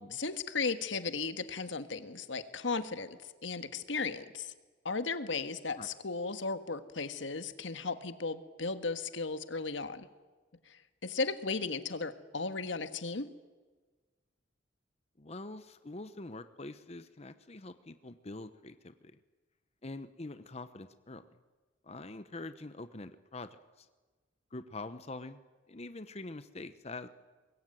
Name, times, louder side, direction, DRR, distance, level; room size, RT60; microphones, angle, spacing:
voice 1, 0.1-4.5 4.8-10.1 10.7-13.3, left 4 dB, 80° left, 10 dB, 1.6 m, -36 dB
voice 2, 15.2-18.9 19.8-21.2 21.8-23.5 23.8-23.9 24.5-25.4 25.7-27.1, left 2 dB, 35° left, 11 dB, 0.9 m, -44 dB
24.5 x 21.5 x 9.2 m, 1.3 s
head